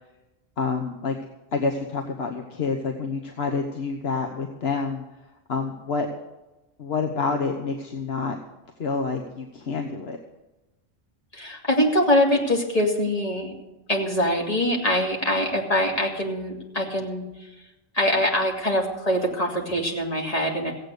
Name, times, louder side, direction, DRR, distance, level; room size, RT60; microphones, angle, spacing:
voice 1, 0.6-1.2 1.5-5.0 5.5-6.1 6.8-8.4 8.8-10.2, left 4 dB, 80° left, 2 dB, 1.3 m, -28 dB
voice 2, 11.3-13.5 13.9-17.2 17.9-20.7, equal, 35° left, -1 dB, 2.6 m, -23 dB
16.0 x 8.6 x 6.7 m, 1.0 s
omnidirectional pair, 1.0 m